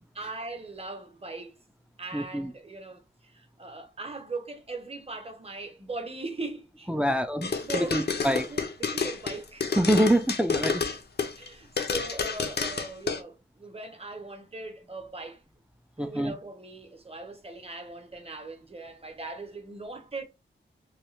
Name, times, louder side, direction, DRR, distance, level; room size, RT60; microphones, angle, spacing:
voice 1, 0.2-1.6 2.0-7.2 7.6-8.1 8.5-9.7 11.4-15.4 16.0-20.2, right 3 dB, 30° right, 0.7 m, -39 dB
voice 2, 2.1-2.5 6.9-8.5 9.8-10.8 16.0-16.3, equal, 5° right, 0.3 m, -26 dB
sound 1, 7.4-11.5 11.8-13.2, left 5 dB, 55° left, 0.5 m, -29 dB
3.1 x 2.2 x 3.1 m
wide cardioid pair, 80°, 21 cm